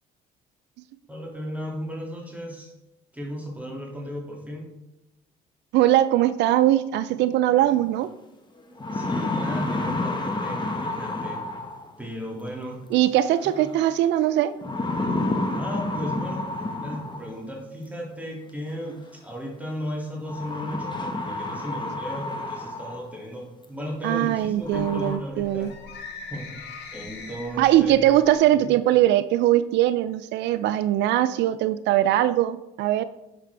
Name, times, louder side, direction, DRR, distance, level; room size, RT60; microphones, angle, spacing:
voice 1, 1.1-2.7 3.1-4.7 8.5-11.4 12.0-12.8 15.5-16.5 16.8-25.7 26.3-26.6 26.9-28.2 28.6-28.7, equal, 10° right, -2 dB, 2.4 m, -35 dB
voice 2, 5.7-8.1 12.9-14.5 24.0-25.7 27.6-33.0, right 13 dB, 75° right, 14 dB, 0.4 m, -21 dB
sound 1, 8.0-8.1 8.6-12.0 13.4-13.8 14.6-17.4 18.7-18.8 20.3-23.2 23.6-23.7 24.3-24.4 24.6-25.2, left 2 dB, 25° left, 1.4 m, -30 dB
sound 2, 24.4-28.3, left 4 dB, 75° left, 1.4 m, -42 dB
9.2 x 6.6 x 3.4 m, 0.94 s
supercardioid pair, 65°, 18 cm